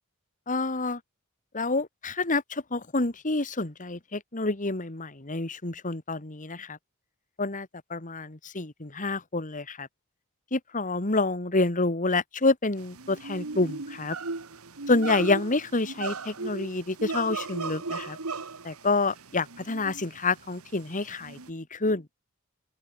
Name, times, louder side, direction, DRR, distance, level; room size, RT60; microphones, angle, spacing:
voice 1, 0.5-1.0 1.5-6.8 7.4-9.9 10.5-14.2 14.9-18.2 18.6-22.1, left 3 dB, 40° left, 2.0 m, -28 dB
sound 1, 12.8-21.5, right 3 dB, 90° right, 1.7 m, -37 dB
open air
head